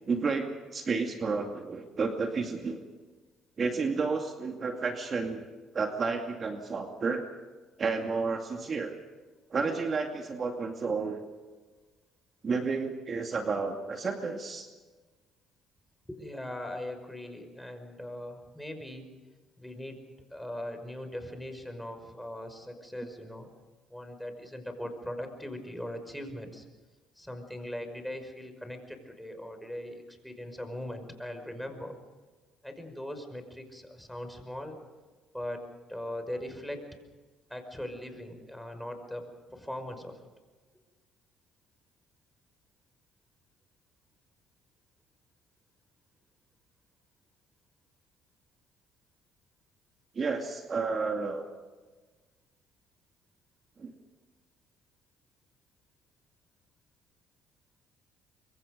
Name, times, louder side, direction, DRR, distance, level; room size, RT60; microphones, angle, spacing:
voice 1, 0.1-2.8 3.6-5.4 5.7-7.2 7.8-8.9 9.5-11.2 12.4-14.7 50.2-51.4 53.8-53.9, right 4 dB, 40° right, 3 dB, 2.4 m, -31 dB
voice 2, 16.1-19.1 19.6-20.0 20.3-23.5 23.9-26.7 27.2-31.9 32.6-34.8 35.3-35.6 35.9-36.9 37.5-40.2, left 1 dB, 5° left, 6 dB, 5.5 m, -40 dB
26.0 x 23.5 x 5.3 m, 1.3 s
supercardioid pair, 75°, 0 cm